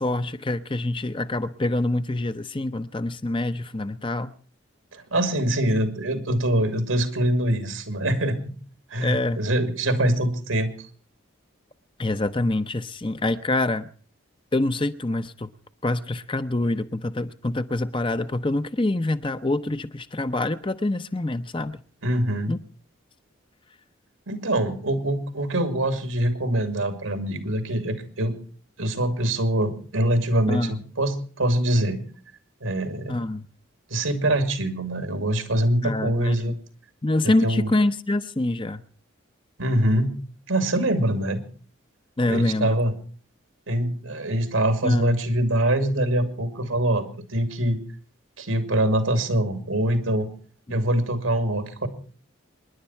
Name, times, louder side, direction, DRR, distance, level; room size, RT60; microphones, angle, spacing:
voice 1, 0.0-4.3 9.0-9.4 12.0-13.9 14.5-15.5 15.8-21.8 22.5-22.6 30.5-30.8 33.1-33.5 35.8-36.6 37.0-38.8 42.2-42.8 44.8-45.1 50.7-50.8, left 2 dB, 25° left, 0.7 m, -26 dB
voice 2, 4.9-8.5 8.9-10.7 22.0-22.5 24.3-28.3 28.8-32.0 32.6-33.1 33.9-36.6 37.2-37.7 39.6-40.1 40.5-41.4 42.3-42.9 43.7-47.0 47.3-47.8 48.4-50.3 50.7-51.9, right 1 dB, 85° right, 2.6 m, -24 dB
27.0 x 11.0 x 4.4 m
head